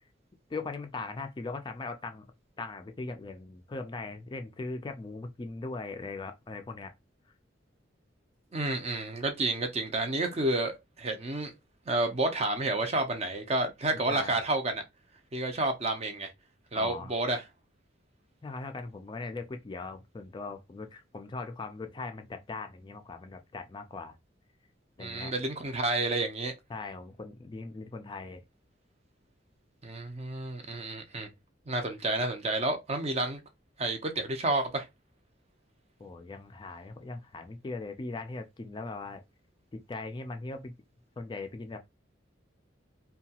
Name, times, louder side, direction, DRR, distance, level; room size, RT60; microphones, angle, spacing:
voice 1, 0.5-2.3 2.6-6.9 14.1-14.4 16.7-17.1 18.4-24.1 25.0-25.3 26.7-28.4 36.0-39.2 39.9-40.7 41.2-41.8, left 3 dB, 25° left, 0.3 m, -39 dB
voice 2, 8.5-11.5 11.9-14.8 15.3-16.3 16.7-17.4 25.0-26.5 29.8-31.3 31.7-33.4 33.8-34.9, right 2 dB, 35° right, 0.5 m, -30 dB
2.8 x 2.3 x 2.8 m
head